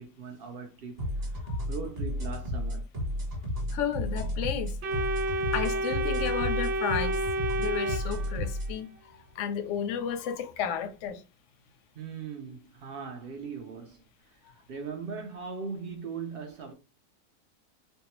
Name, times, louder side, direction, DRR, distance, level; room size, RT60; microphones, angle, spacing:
voice 1, 0.0-2.9 12.0-16.7, right 5 dB, 85° right, 0.5 m, -40 dB
sound 1, 1.0-8.7, left 1 dB, 30° right, 1.0 m, -32 dB
voice 2, 3.7-4.8 5.5-7.2 7.6-11.2, left 8 dB, 65° left, 0.8 m, -33 dB
Organ, 4.8-8.8, right 1 dB, 65° right, 0.9 m, -30 dB
3.6 x 2.2 x 2.9 m
omnidirectional pair, 1.6 m